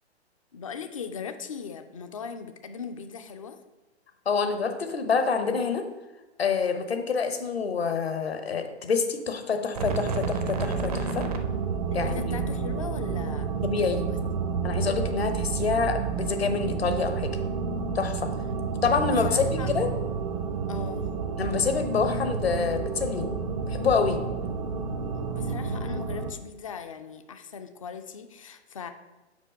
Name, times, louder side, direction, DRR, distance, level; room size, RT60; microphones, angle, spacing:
voice 1, 0.5-3.6 11.9-13.5 13.8-14.2 19.0-19.7 20.7-21.1 25.2-28.9, left 6 dB, 30° left, 9 dB, 0.4 m, -39 dB
voice 2, 4.3-5.9 6.4-11.3 11.9-12.2 13.6-14.0 14.6-17.3 17.9-18.3 18.8-19.9 21.4-23.3 23.7-24.2, left 5 dB, 65° left, 7 dB, 0.9 m, -27 dB
sound 1, 9.7-26.3, right 5 dB, 35° right, 0.5 m, -30 dB
5.3 x 4.8 x 5.3 m, 1.1 s
figure-of-eight pair, 120°, 34 cm